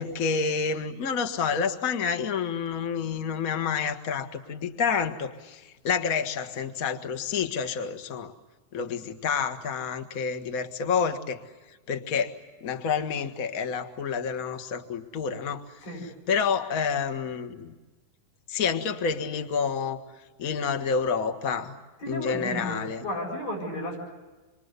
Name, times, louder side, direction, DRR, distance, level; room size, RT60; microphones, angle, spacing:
voice 1, 0.0-8.3 8.7-11.4 11.9-15.7 16.3-17.7 18.5-20.0 20.4-21.7 22.1-23.0, left 6 dB, 45° left, 7 dB, 1.1 m, -29 dB
voice 2, 22.0-24.0, equal, 80° left, -1 dB, 9.7 m, -33 dB
27.5 x 24.0 x 8.2 m, 1.2 s
omnidirectional pair, 4.0 m